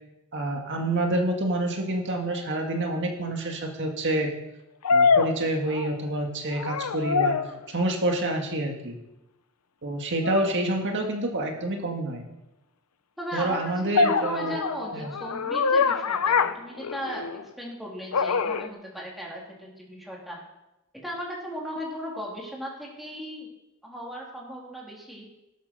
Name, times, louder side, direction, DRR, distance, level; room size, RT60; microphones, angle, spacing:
voice 1, 0.3-4.3 4.9-7.4 7.7-9.0 9.8-12.2 13.3-14.6 14.9-15.1, right 1 dB, 55° right, 2 dB, 1.8 m, -27 dB
sound 1, 2.5-2.6 4.8-6.2 6.5-7.6 10.2-10.5 14.0-17.4 18.1-18.7, left 5 dB, 90° left, 0.7 m, -24 dB
voice 2, 13.2-20.4 20.9-23.5 23.8-25.3, equal, ahead, -3 dB, 3.0 m, -36 dB
17.5 x 7.6 x 6.6 m, 0.94 s
head